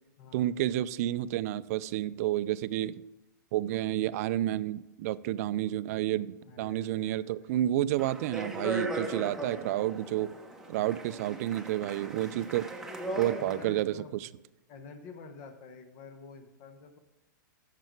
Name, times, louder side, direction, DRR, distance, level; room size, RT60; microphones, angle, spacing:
voice 1, 0.3-3.0 3.5-10.3 10.7-12.7 13.1-13.9 14.2-14.3, right 13 dB, 50° right, 0.4 m, -30 dB
voice 2, 6.4-7.6 13.4-14.3 14.7-17.0, left 4 dB, 40° left, 1.2 m, -49 dB
Speech, 8.0-13.8, right 2 dB, 5° right, 0.9 m, -38 dB
9.0 x 6.7 x 4.7 m
hypercardioid pair, 125°, 11 cm